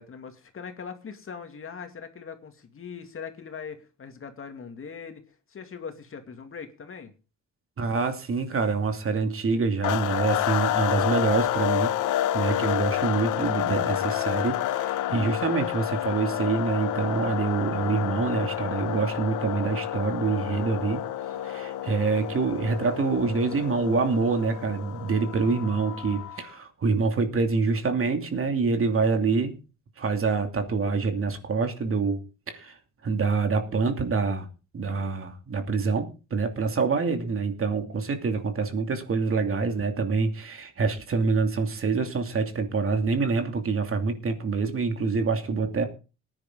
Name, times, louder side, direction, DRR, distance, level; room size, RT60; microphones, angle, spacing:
voice 1, 0.0-7.1, left 6 dB, 45° left, 6 dB, 2.4 m, -41 dB
voice 2, 7.8-12.0 12.3-21.0 21.4-29.6 30.0-32.7 33.0-34.5 34.7-45.9, right 4 dB, 45° right, 6 dB, 2.8 m, -26 dB
sound 1, 9.8-26.5, left 12 dB, 85° left, 0.9 m, -29 dB
18.5 x 10.5 x 3.9 m, 0.32 s
cardioid pair, 90°, 30 cm